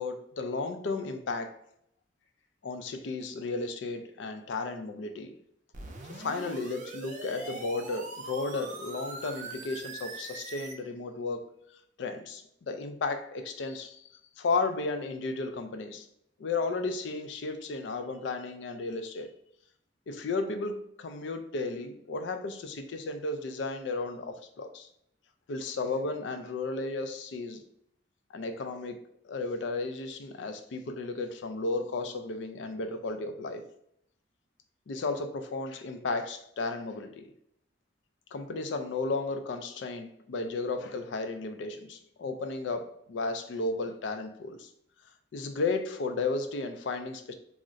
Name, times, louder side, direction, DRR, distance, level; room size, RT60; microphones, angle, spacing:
voice 1, 0.0-1.6 2.6-5.4 6.1-11.4 12.0-16.1 16.4-19.3 20.1-24.9 25.5-27.6 28.3-29.0 29.2-33.6 34.9-37.3 38.3-44.7 45.3-47.3, left 3 dB, 70° left, 7 dB, 0.4 m, -34 dB
sound 1, 5.7-10.7, right 3 dB, 45° right, 0.5 m, -42 dB
2.4 x 2.1 x 3.8 m, 0.71 s
head